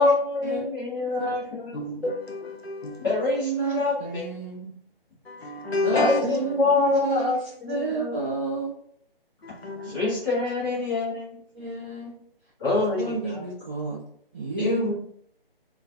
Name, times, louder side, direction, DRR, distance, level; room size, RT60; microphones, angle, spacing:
voice 1, 0.0-1.8 3.0-4.3 5.9-8.2 9.8-11.4 12.6-13.4 14.6-14.9, left 3 dB, 20° left, 1.0 m, -25 dB
voice 2, 1.7-3.0 5.3-6.2 9.4-10.0, left 2 dB, 90° left, 0.7 m, -30 dB
voice 3, 3.4-4.7 5.8-7.3 7.7-8.7 9.8-10.0 11.5-12.1 12.7-14.0 14.3-14.9, right 4 dB, 10° right, 0.7 m, -30 dB
2.4 x 2.3 x 2.3 m
figure-of-eight pair, 145°, 30 cm